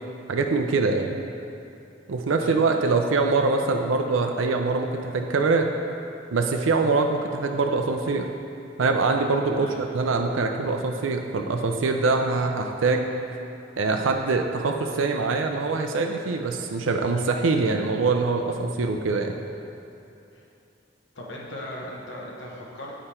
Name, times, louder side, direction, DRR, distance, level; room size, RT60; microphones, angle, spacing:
voice 1, 0.3-1.2 2.1-5.7 6.3-8.3 8.8-13.1 13.8-19.4, right 3 dB, 80° right, 4 dB, 0.5 m, -24 dB
voice 2, 21.1-23.0, left 1 dB, 65° left, -3 dB, 1.0 m, -38 dB
8.8 x 5.0 x 4.3 m, 2.8 s
head